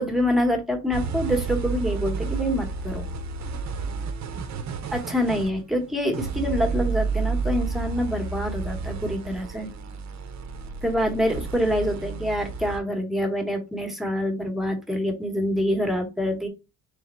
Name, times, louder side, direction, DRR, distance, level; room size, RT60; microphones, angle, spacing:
voice 1, 0.0-3.1 4.9-9.7 10.8-16.5, equal, ahead, 5 dB, 1.0 m, -26 dB
sound 1, 0.9-12.8, right 4 dB, 55° right, 0.7 m, -31 dB
3.5 x 3.4 x 4.2 m, 0.28 s
cardioid pair, 155°, 34 cm